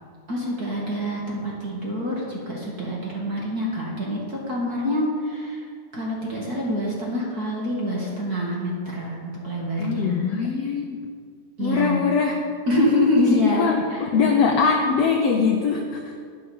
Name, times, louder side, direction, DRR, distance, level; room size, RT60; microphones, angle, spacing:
voice 1, 0.3-5.6 5.9-10.2 11.6-12.0 12.7-14.0, left 1 dB, 35° right, -4 dB, 1.9 m, -26 dB
voice 2, 9.8-11.0 11.6-12.6 13.1-16.1, left 5 dB, 75° left, 3 dB, 1.5 m, -22 dB
11.5 x 10.0 x 5.4 m, 2.1 s
omnidirectional pair, 3.8 m